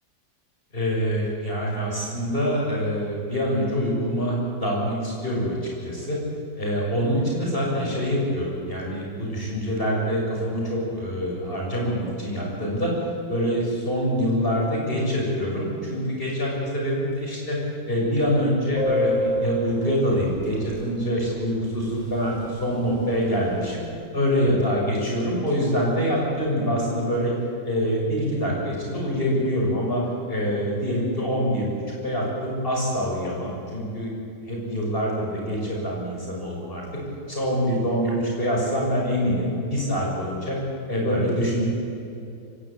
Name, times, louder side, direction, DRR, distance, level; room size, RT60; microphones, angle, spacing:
voice 1, 0.7-5.6 5.8-6.2 6.6-12.9 13.3-17.6 17.9-23.8 24.1-27.3 27.7-30.0 30.3-31.7 32.0-34.1 34.5-37.0 37.3-40.6 40.9-41.7, equal, 25° left, -3 dB, 6.9 m, -25 dB
Subway metro underground, 18.7-20.9 21.2-21.3 21.5-21.7 22.0-22.5 22.7-23.7, left 1 dB, 20° right, 5.8 m, -27 dB
25.0 x 17.5 x 8.8 m, 2.7 s
omnidirectional pair, 2.1 m